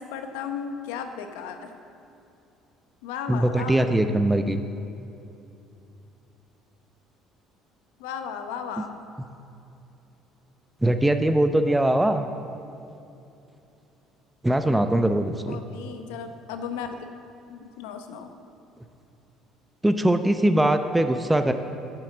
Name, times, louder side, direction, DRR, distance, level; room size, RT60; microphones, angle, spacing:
voice 1, 0.0-1.7 3.0-3.9 8.0-8.9 15.5-16.9 17.5-18.3, left 7 dB, 85° left, 7 dB, 0.8 m, -35 dB
voice 2, 3.3-4.6 10.8-12.3 14.4-15.6 19.8-21.5, right 1 dB, 10° right, 8 dB, 0.6 m, -21 dB
8.6 x 7.8 x 7.4 m, 2.8 s
supercardioid pair, 75°, 0 cm